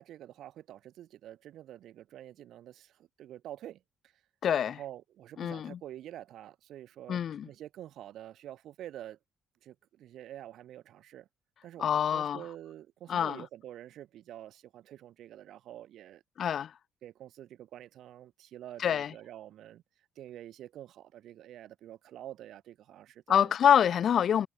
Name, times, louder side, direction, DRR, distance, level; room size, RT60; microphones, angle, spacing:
voice 1, 0.0-3.8 4.6-9.2 9.6-11.3 11.6-16.2 17.0-19.8 20.2-23.5, right 12 dB, 75° right, 0.6 m, -47 dB
voice 2, 4.4-4.8 5.4-5.8 7.1-7.5 11.8-12.4 13.1-13.4 16.4-16.7 18.8-19.1 23.3-24.5, left 9 dB, 60° left, 0.4 m, -26 dB
cardioid pair, 90°, 0 cm